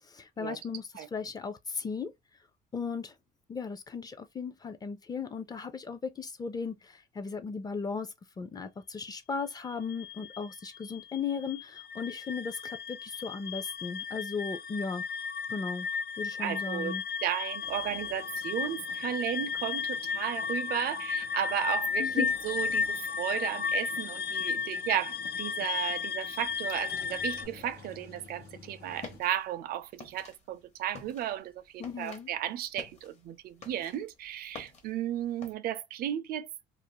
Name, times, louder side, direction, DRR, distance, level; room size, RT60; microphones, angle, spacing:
voice 1, 0.1-2.1 2.7-3.1 3.5-15.0 15.5-15.9 16.2-17.0 22.0-22.3 31.8-32.3, left 5 dB, 25° left, 0.5 m, -36 dB
sound 1, 9.6-27.4, left 6 dB, 70° left, 0.6 m, -34 dB
voice 2, 16.4-17.0 17.2-36.5, right 11 dB, 65° right, 0.5 m, -34 dB
sound 2, 17.6-29.2, left 6 dB, 90° left, 1.0 m, -53 dB
sound 3, 28.8-35.5, left 4 dB, 40° left, 1.0 m, -50 dB
2.5 x 2.0 x 2.9 m
cardioid pair, 110°, 17 cm